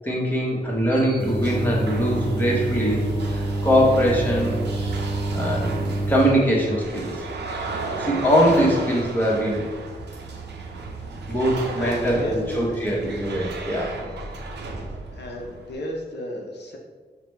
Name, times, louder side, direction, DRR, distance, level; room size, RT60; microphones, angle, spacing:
voice 1, 0.0-4.6 5.3-7.2 8.0-9.7 11.3-13.9, equal, 10° left, -4 dB, 1.1 m, -22 dB
sound 1, 0.6-15.7, right 3 dB, 85° right, 0.5 m, -34 dB
sound 2, 1.2-6.2, right 2 dB, 30° right, 0.9 m, -27 dB
voice 2, 11.8-12.7 15.1-16.8, equal, 80° left, -1 dB, 0.7 m, -33 dB
5.7 x 2.2 x 3.2 m, 1.4 s
wide cardioid pair, 95°, 17 cm